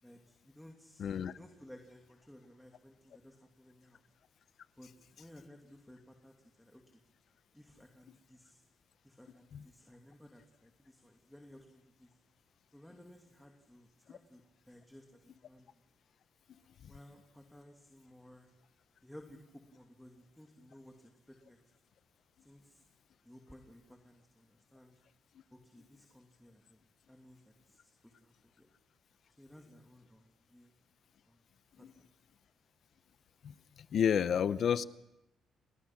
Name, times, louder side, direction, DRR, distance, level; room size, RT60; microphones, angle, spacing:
voice 1, 0.0-4.0 4.8-7.0 7.5-8.6 9.0-12.2 12.7-15.8 16.9-18.5 19.0-21.6 22.4-22.8 23.2-25.0 25.5-28.7 29.3-30.7 31.3-31.4 31.8-32.1, left 1 dB, 5° left, 3 dB, 2.8 m, -57 dB
voice 2, 1.0-1.3 9.5-9.6 33.4-33.5 33.9-34.8, left 8 dB, 60° left, 15 dB, 0.9 m, -30 dB
29.5 x 20.5 x 6.1 m, 0.90 s
cardioid pair, 90°, 0 cm